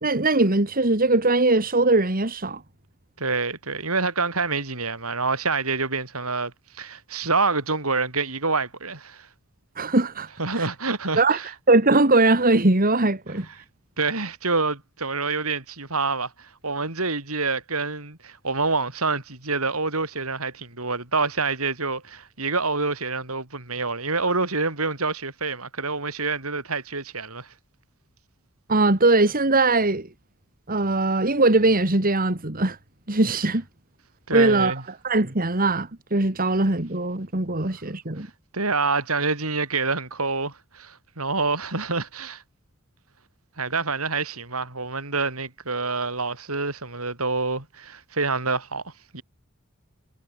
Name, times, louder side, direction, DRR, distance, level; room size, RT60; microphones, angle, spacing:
voice 1, 0.0-2.6 9.8-10.3 10.6-10.7 11.1-11.4 11.7-13.5 28.7-30.1 30.7-32.8 33.1-33.6 34.3-34.7 35.0-38.3, right 2 dB, 40° right, 2.4 m, -20 dB
voice 2, 3.2-9.3 10.4-11.5 14.0-27.5 34.3-34.8 38.2-38.3 38.5-42.4 43.6-49.2, right 4 dB, 90° right, 6.8 m, -27 dB
head